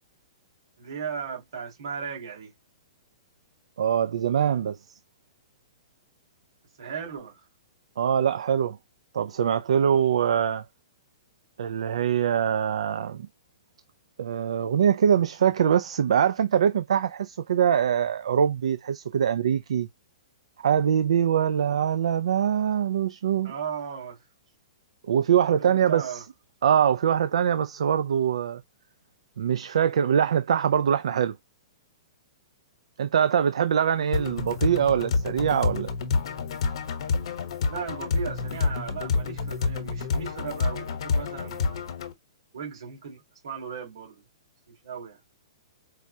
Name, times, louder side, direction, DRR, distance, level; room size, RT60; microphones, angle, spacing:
voice 1, 0.8-2.5 6.8-7.4 23.4-24.2 25.6-26.2 34.0-34.3 37.7-42.0 42.5-44.2 44.7-45.2, right 6 dB, 65° right, 2.5 m, -36 dB
voice 2, 3.8-5.0 8.0-8.8 9.1-10.7 11.6-13.3 14.2-19.9 20.6-23.5 25.0-26.2 26.6-28.6 29.4-31.4 33.0-35.9, right 8 dB, 85° right, 0.3 m, -23 dB
sound 1, 34.1-42.1, left 4 dB, 65° left, 1.0 m, -28 dB
4.6 x 2.1 x 2.7 m
hypercardioid pair, 165°, 3 cm